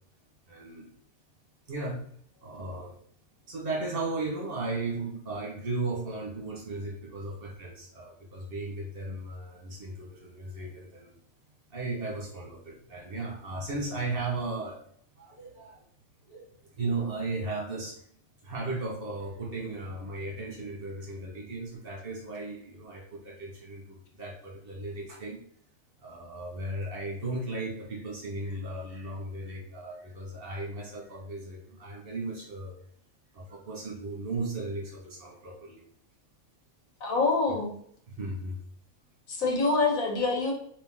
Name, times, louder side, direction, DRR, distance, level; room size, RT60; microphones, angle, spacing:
voice 1, 0.5-0.9 1.7-2.0 2.4-3.0 3.5-11.1 11.7-14.8 15.2-15.8 16.3-18.0 18.4-25.4 26.0-32.8 33.3-35.8 37.5-37.6 38.1-38.6, right 2 dB, 45° right, -2 dB, 1.5 m, -36 dB
voice 2, 37.0-37.7 39.3-40.5, left 3 dB, 85° left, -1 dB, 1.4 m, -26 dB
3.9 x 3.0 x 3.6 m, 0.63 s
omnidirectional pair, 1.4 m